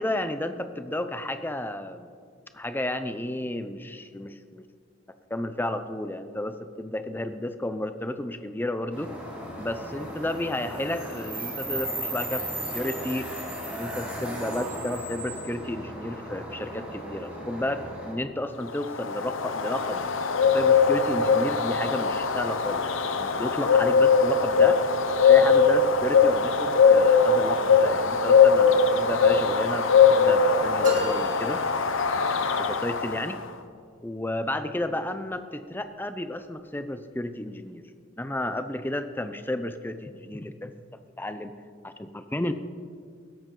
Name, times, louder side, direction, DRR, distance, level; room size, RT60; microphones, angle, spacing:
voice 1, 0.0-2.1 2.5-4.6 5.3-9.1 9.6-12.5 12.7-13.3 13.6-20.1 20.5-24.8 25.2-31.6 32.6-33.4 34.0-37.8 38.2-40.7 41.2-41.5 41.8-42.5, left 1 dB, 10° left, 10 dB, 0.5 m, -32 dB
sound 1, 8.9-18.1, right 1 dB, 5° right, 4.1 m, -36 dB
Bird, 18.7-33.4, left 5 dB, 65° left, 0.8 m, -21 dB
sound 2, 30.8-32.5, right 2 dB, 40° right, 2.2 m, -35 dB
16.5 x 13.0 x 3.8 m, 2.1 s
head